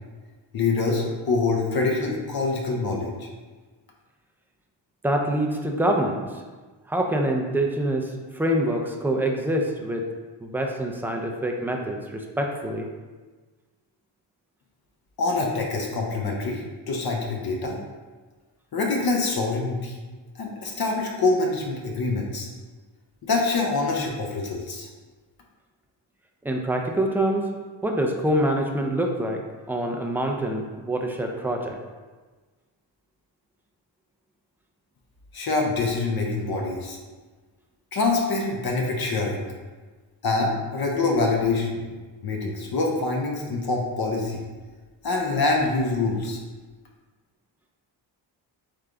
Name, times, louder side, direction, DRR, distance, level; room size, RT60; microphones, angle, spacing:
voice 1, 0.5-3.3 15.2-16.6 16.9-17.8 18.7-20.0 20.4-22.5 23.2-24.9 35.3-37.0 37.9-39.4 40.2-41.9 42.2-44.4 45.0-46.4, left 3 dB, 55° left, 0 dB, 0.7 m, -25 dB
voice 2, 5.0-6.3 6.9-10.1 10.4-12.9 26.4-27.5 27.8-31.8, right 1 dB, 5° right, 2 dB, 0.3 m, -25 dB
3.7 x 3.4 x 3.3 m, 1.3 s
wide cardioid pair, 105°, 45 cm